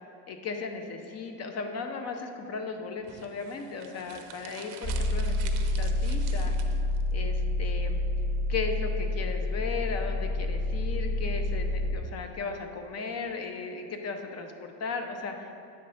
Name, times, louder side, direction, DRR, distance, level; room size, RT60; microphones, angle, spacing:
voice 1, 0.3-6.5 7.1-8.0 8.5-15.5, left 4 dB, 40° left, 5 dB, 0.7 m, -36 dB
sound 1, 3.0-7.0, right 9 dB, 65° right, 0.7 m, -47 dB
sound 2, 4.8-12.0, left 1 dB, 20° left, 1.2 m, -28 dB
8.1 x 3.2 x 5.6 m, 2.5 s
cardioid pair, 120°, 42 cm